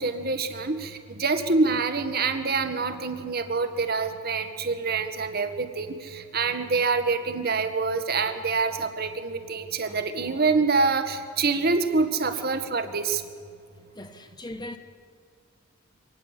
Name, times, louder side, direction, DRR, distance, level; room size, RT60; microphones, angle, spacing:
voice 1, 0.0-13.2, right 4 dB, 50° right, 1.7 m, -26 dB
voice 2, 9.8-10.5 12.3-12.5 13.9-14.8, left 1 dB, 20° left, 1.3 m, -41 dB
25.0 x 19.0 x 8.3 m
head